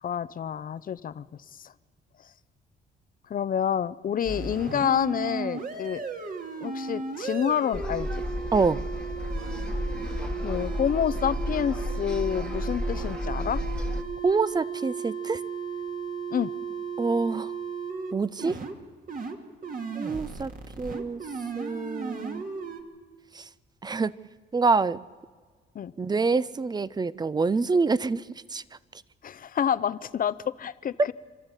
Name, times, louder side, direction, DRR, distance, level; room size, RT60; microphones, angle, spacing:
voice 1, 0.0-1.3 1.5-1.7 3.3-6.0 6.6-8.2 10.4-13.6 16.3-16.5 25.7-25.9 29.2-31.1, left 8 dB, 45° left, 16 dB, 0.7 m, -28 dB
sound 1, 4.2-18.1 18.4-18.7 19.1-19.4 19.6-22.8, right 5 dB, 45° right, 2.1 m, -35 dB
sound 2, 7.7-14.0, left 1 dB, 5° left, 1.4 m, -32 dB
voice 2, 14.2-15.4 17.0-17.5 18.1-18.6 19.9-20.5 20.8-21.2 21.6-22.4 23.3-23.4 23.8-24.1 24.5-25.0 26.0-28.3 28.5-28.6, right 4 dB, 20° right, 19 dB, 0.6 m, -26 dB
27.5 x 13.0 x 8.2 m, 1.5 s
cardioid pair, 90°, 20 cm